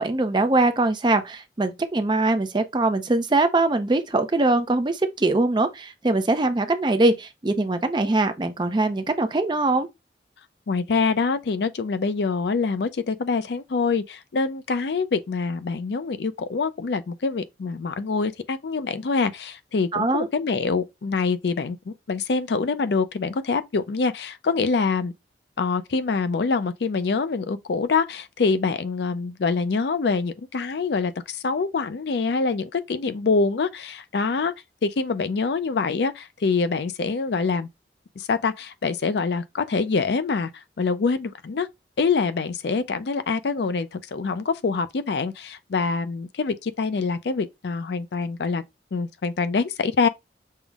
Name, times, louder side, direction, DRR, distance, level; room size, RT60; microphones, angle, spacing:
voice 1, 0.0-9.9 19.9-20.3, right 2 dB, 25° right, 0.5 m, -22 dB
voice 2, 10.7-25.1 25.6-34.5 34.8-37.7 38.2-41.7 42.0-48.6 48.9-50.1, left 4 dB, 75° left, 0.4 m, -25 dB
5.5 x 2.0 x 3.4 m
head